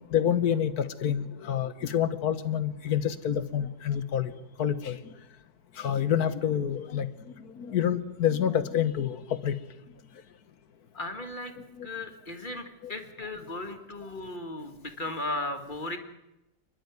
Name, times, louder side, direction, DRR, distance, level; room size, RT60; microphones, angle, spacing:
voice 1, 0.1-4.3 4.6-5.0 5.8-7.1 7.4-9.6 11.8-11.9, left 9 dB, 60° left, 13 dB, 1.5 m, -27 dB
voice 2, 10.9-11.5 11.8-16.0, left 2 dB, 25° left, 6 dB, 2.1 m, -36 dB
28.5 x 11.0 x 9.5 m, 0.93 s
omnidirectional pair, 2.0 m